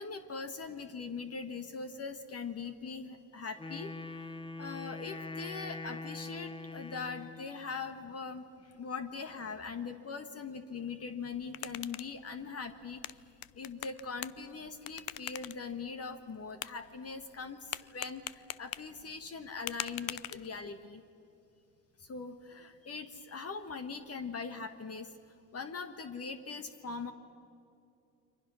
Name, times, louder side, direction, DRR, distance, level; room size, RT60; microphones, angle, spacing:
voice 1, 0.0-4.3 4.6-13.0 13.5-21.0 22.0-25.1 25.5-27.1, left 5 dB, 35° left, 8 dB, 1.5 m, -41 dB
Wind instrument woodwind instrument, 3.6-7.6, left 3 dB, 10° left, 1.1 m, -43 dB
sound 1, 11.2-20.9, left 15 dB, 55° left, 0.7 m, -45 dB
29.5 x 24.0 x 6.4 m, 2.6 s
supercardioid pair, 95°, 43 cm